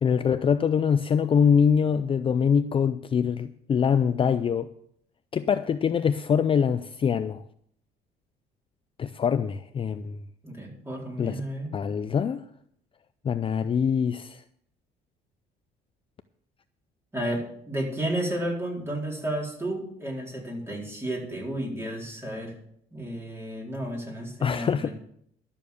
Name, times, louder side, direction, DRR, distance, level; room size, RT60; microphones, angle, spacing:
voice 1, 0.0-4.7 5.3-7.4 9.0-10.2 11.2-11.4 11.7-12.4 13.2-14.4 24.4-24.9, left 7 dB, 30° left, 0.5 m, -24 dB
voice 2, 10.4-11.7 17.1-22.5 22.9-24.9, right 1 dB, 15° right, 4.4 m, -32 dB
12.5 x 7.0 x 6.9 m
cardioid pair, 110°, 17 cm